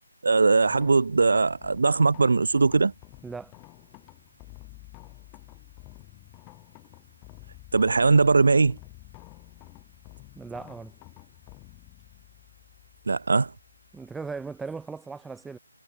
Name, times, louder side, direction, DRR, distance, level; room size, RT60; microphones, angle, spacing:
voice 1, 0.2-2.9 7.7-8.8 13.1-13.5, right 4 dB, 55° right, 0.5 m, -20 dB
sound 1, 0.6-14.8, left 30 dB, 15° left, 3.6 m, -50 dB
voice 2, 10.4-10.9 13.9-15.6, right 4 dB, 5° right, 2.4 m, -37 dB
figure-of-eight pair, 150°, 0 cm